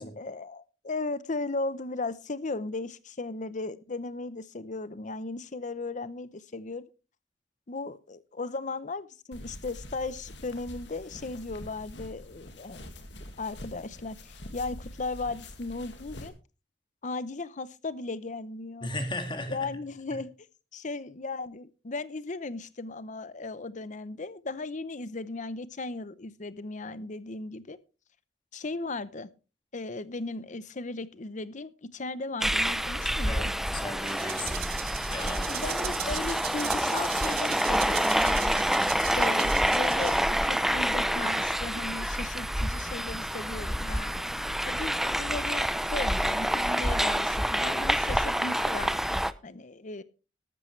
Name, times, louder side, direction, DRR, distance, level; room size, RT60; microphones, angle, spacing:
voice 1, 0.0-6.8 7.7-12.8 13.4-16.3 17.0-18.9 19.5-20.3 20.7-27.8 28.5-29.3 29.7-33.5 35.5-38.6 39.2-44.3 44.6-50.0, left 3 dB, 45° left, 16 dB, 0.8 m, -36 dB
sound 1, 9.3-16.3, left 1 dB, 75° left, 2.1 m, -45 dB
voice 2, 18.8-19.7 33.3-34.7 35.0-35.5 36.0-36.2, left 1 dB, 25° left, 7 dB, 2.1 m, -36 dB
sound 2, 32.4-49.3, equal, ahead, 0.5 m, -27 dB
Rattle (instrument), 34.0-40.5, right 15 dB, 60° right, 0.5 m, -39 dB
13.5 x 12.5 x 3.2 m, 0.32 s
head